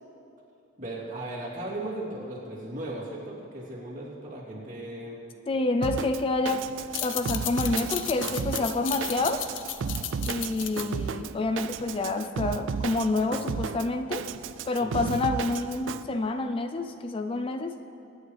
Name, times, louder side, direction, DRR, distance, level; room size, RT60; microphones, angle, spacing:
voice 1, 0.8-5.2 14.8-15.0, right 1 dB, 45° right, -6 dB, 3.0 m, -37 dB
voice 2, 5.5-6.7 7.0-9.4 10.3-14.3 14.7-17.7, left 2 dB, 30° left, 7 dB, 0.4 m, -28 dB
Drum kit, 5.8-16.0, right 6 dB, 90° right, 0.4 m, -34 dB
sound 1, 6.9-12.0, left 10 dB, 90° left, 0.7 m, -35 dB
22.5 x 9.7 x 3.3 m, 2.7 s
head